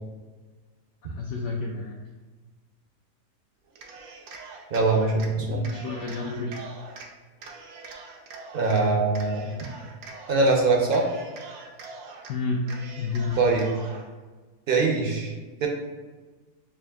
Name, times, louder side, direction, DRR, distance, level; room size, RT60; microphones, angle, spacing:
voice 1, 1.2-2.0 5.3-6.7 12.3-12.7 13.0-13.6, left 3 dB, 65° left, -1 dB, 0.7 m, -30 dB
Cheering, 3.7-5.3 5.6-7.1 7.4-8.8 9.1-10.6 10.9-12.3 12.6-14.1, right 4 dB, 80° right, 1.1 m, -43 dB
voice 2, 4.7-5.6 8.5-9.4 10.3-11.0 13.4-13.7 14.7-15.3 15.6-15.7, right 3 dB, 55° right, 0 dB, 0.6 m, -22 dB
6.9 x 2.5 x 2.3 m, 1.3 s
omnidirectional pair, 1.6 m